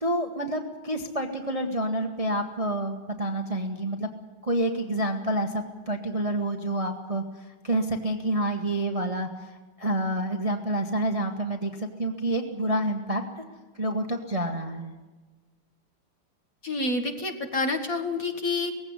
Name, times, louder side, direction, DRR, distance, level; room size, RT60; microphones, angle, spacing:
voice 1, 0.0-4.1 4.4-7.2 7.6-9.3 9.8-13.2 13.8-14.9, right 1 dB, 20° right, 4 dB, 1.3 m, -28 dB
voice 2, 16.6-18.7, left 3 dB, 40° left, 5 dB, 1.9 m, -28 dB
18.5 x 16.0 x 9.7 m, 1.3 s
omnidirectional pair, 2.4 m